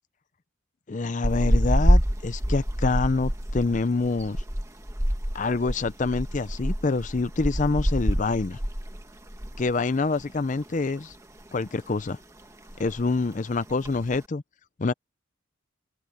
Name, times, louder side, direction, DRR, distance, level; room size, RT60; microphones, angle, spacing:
voice 1, 0.9-4.4 5.3-8.6 9.6-11.2 11.5-12.2 12.8-14.4 14.8-14.9, left 3 dB, 35° left, 0.5 m, -26 dB
sound 1, 1.2-9.8 10.0-10.2 10.6-11.5 11.8-12.2 12.4-12.5 12.7-13.1 13.7-14.2, equal, 15° right, 1.5 m, -26 dB
head